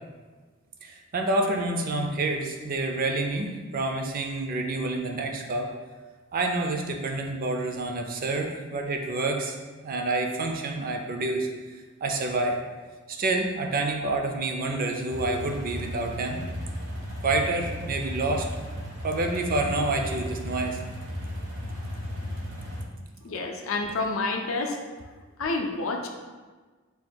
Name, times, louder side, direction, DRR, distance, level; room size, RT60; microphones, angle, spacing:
voice 1, 0.8-5.7 6.3-9.6 9.8-11.5 12.0-12.6 13.1-16.4 17.2-18.5 19.0-20.8, right 2 dB, 45° right, 3 dB, 0.4 m, -28 dB
sound 1, 15.1-22.8, equal, 80° right, 1.1 m, -35 dB
voice 2, 23.2-24.8 25.4-26.1, left 3 dB, 75° left, 3 dB, 0.5 m, -28 dB
3.6 x 2.2 x 4.3 m, 1.3 s
head